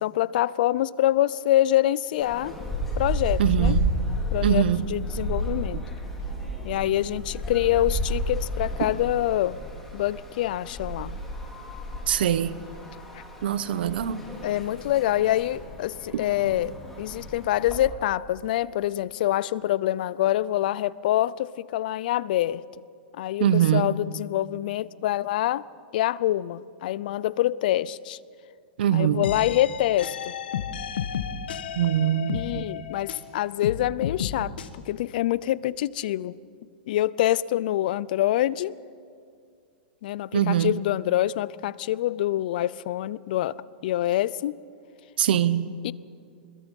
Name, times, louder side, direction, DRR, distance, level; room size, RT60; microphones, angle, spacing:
voice 1, 0.0-2.5 3.0-3.8 4.3-5.8 6.6-9.6 9.9-11.2 13.1-13.2 14.4-22.6 23.2-25.7 25.9-28.2 28.9-30.3 32.3-34.5 34.9-36.4 36.9-38.7 40.0-43.6 43.8-44.6 45.8-45.9, left 13 dB, 60° left, 20 dB, 0.6 m, -25 dB
sound 1, 2.2-17.8, right 1 dB, 5° left, 4.2 m, -32 dB
voice 2, 3.4-3.9 4.4-4.9 12.1-12.6 13.4-14.2 23.4-23.9 28.8-29.2 31.8-32.6 40.3-40.7 45.2-45.7, right 10 dB, 75° right, 15 dB, 0.9 m, -23 dB
sound 2, 29.2-33.3 33.6-34.7, left 8 dB, 80° left, 1.5 m, -32 dB
27.5 x 21.5 x 5.4 m, 2.3 s
hypercardioid pair, 140°, 5 cm